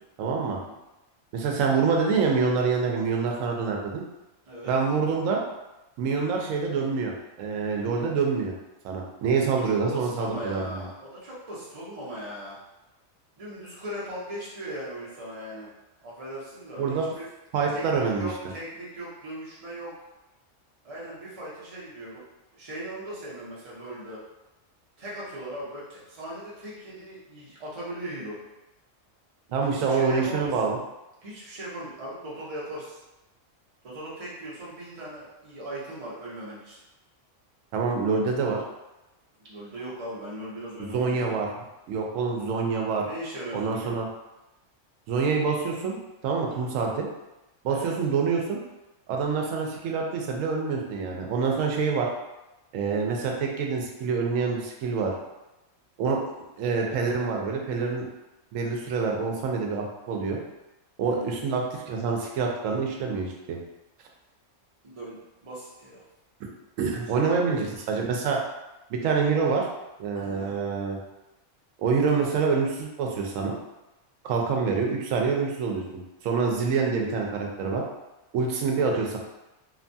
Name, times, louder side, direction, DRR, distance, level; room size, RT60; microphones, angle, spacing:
voice 1, 0.2-0.6 1.3-4.0 4.7-5.4 6.0-8.5 8.8-10.9 16.8-17.1 17.5-18.3 29.5-30.8 37.7-38.6 40.8-43.0 43.5-44.1 45.1-47.1 47.6-48.6 49.1-52.1 52.7-55.1 56.0-56.2 56.6-58.0 58.5-60.4 61.0-63.6 66.8-68.4 68.9-69.7 70.0-71.0 71.8-73.5 74.2-77.8 78.3-79.2, right 5 dB, 90° right, 0 dB, 1.0 m, -26 dB
voice 2, 9.0-12.6 13.4-15.7 16.0-17.3 17.7-19.9 20.8-22.2 22.5-24.2 25.0-28.4 29.5-30.6 31.2-33.0 33.8-36.8 39.4-41.4 43.0-44.0 46.5-46.7 47.7-47.9 61.0-61.3 64.8-66.0 67.0-67.8 70.1-70.5, right 1 dB, 35° right, -6 dB, 0.8 m, -39 dB
2.9 x 2.2 x 2.6 m, 0.98 s
omnidirectional pair, 1.3 m